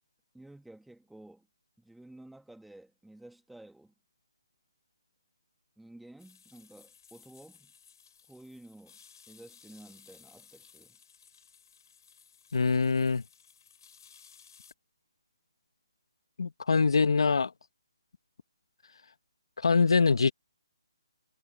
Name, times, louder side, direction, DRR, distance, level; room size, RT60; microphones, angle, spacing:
voice 1, 0.3-1.5 1.8-3.9 5.8-7.7 8.3-9.0 9.3-11.0, right 1 dB, ahead, 1.7 m, -52 dB
sound 1, 6.2-14.7, left 7 dB, 50° left, 4.9 m, -58 dB
voice 2, 12.5-13.2 16.4-17.5 19.6-20.3, left 4 dB, 75° left, 1.0 m, -24 dB
hypercardioid pair, 165°, 3 cm